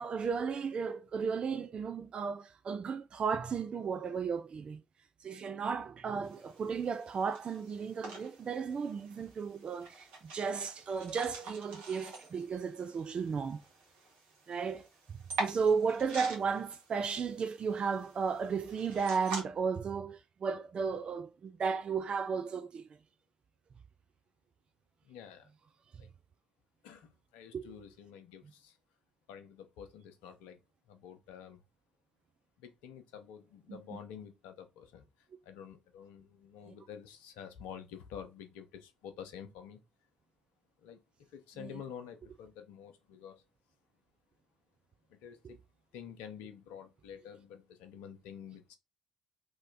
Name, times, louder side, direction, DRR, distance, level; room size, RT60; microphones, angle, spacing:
voice 1, 0.0-4.8 5.2-10.1 10.3-13.6 14.5-14.8 15.4-22.8 27.5-27.7 41.6-41.7, right 5 dB, 40° right, 0.3 m, -34 dB
sound 1, 6.2-19.4, right 2 dB, 65° right, 1.1 m, -45 dB
voice 2, 25.0-25.5 26.0-26.1 26.8-28.8 29.3-30.6 30.9-31.6 32.6-35.0 35.4-39.8 40.8-41.0 41.3-43.4 45.1-45.6 45.9-48.8, left 8 dB, 65° left, 0.6 m, -49 dB
3.2 x 2.8 x 3.9 m
figure-of-eight pair, 40°, 3 cm